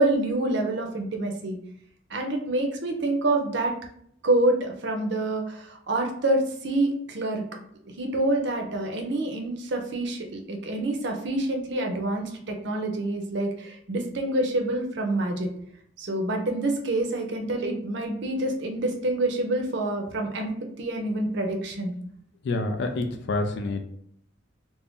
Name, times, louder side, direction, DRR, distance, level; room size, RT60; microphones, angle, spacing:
voice 1, 0.0-1.6 2.1-3.7 4.2-7.4 8.0-15.5 16.0-21.9, right 2 dB, 60° right, 3 dB, 0.5 m, -27 dB
voice 2, 22.4-23.9, left 2 dB, 60° left, 5 dB, 0.3 m, -27 dB
2.5 x 2.1 x 3.5 m, 0.66 s
head